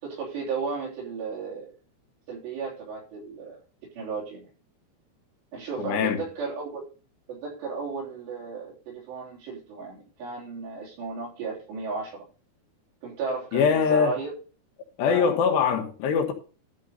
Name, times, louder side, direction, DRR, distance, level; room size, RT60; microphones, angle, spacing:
voice 1, 0.0-1.7 2.3-3.6 4.0-4.5 5.5-6.8 7.3-12.2 13.0-14.3 15.1-15.3, right 4 dB, 85° right, 5.5 m, -34 dB
voice 2, 5.8-6.2 13.5-14.1 15.0-16.3, left 6 dB, 80° left, 3.5 m, -22 dB
12.5 x 6.3 x 4.2 m
omnidirectional pair, 4.8 m